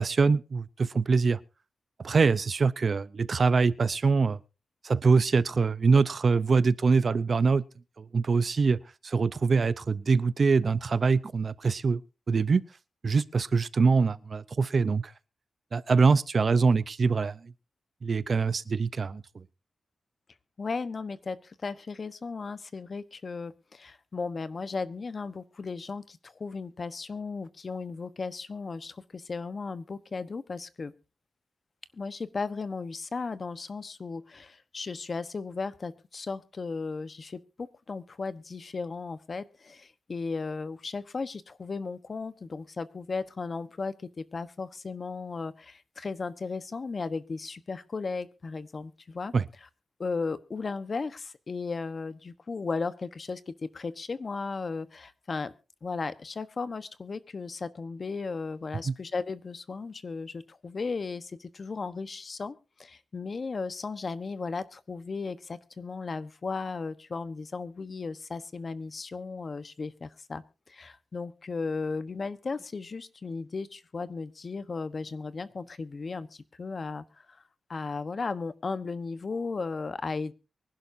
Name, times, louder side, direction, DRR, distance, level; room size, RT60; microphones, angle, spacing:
voice 1, 0.0-1.4 2.0-4.4 4.8-7.6 8.0-12.0 12.3-12.6 13.0-15.1 15.7-17.5 18.0-19.4 49.3-49.4 58.9-59.0, right 4 dB, 45° right, 0.6 m, -24 dB
voice 2, 20.6-30.9 31.9-49.3 50.0-55.5 55.8-77.4 77.7-80.3, left 4 dB, 40° left, 1.1 m, -35 dB
24.0 x 11.5 x 2.7 m
wide cardioid pair, 130°, 0 cm